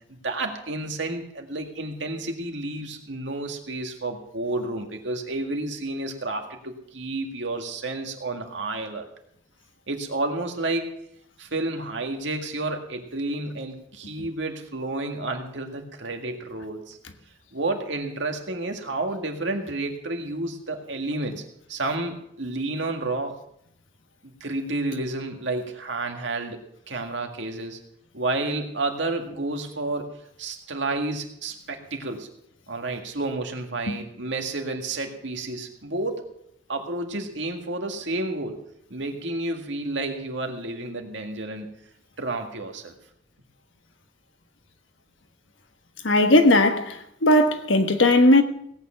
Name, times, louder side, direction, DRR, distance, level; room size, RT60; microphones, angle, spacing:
voice 1, 0.1-9.1 9.9-10.9 11.4-17.0 17.5-21.4 21.7-23.4 24.4-27.8 28.1-32.3 32.7-36.3 36.7-38.6 38.9-41.7 42.2-43.0, right 2 dB, 75° right, 2.0 m, -30 dB
voice 2, 46.0-46.9 47.2-48.4, left 1 dB, 85° left, 1.3 m, -17 dB
17.5 x 9.0 x 5.8 m
head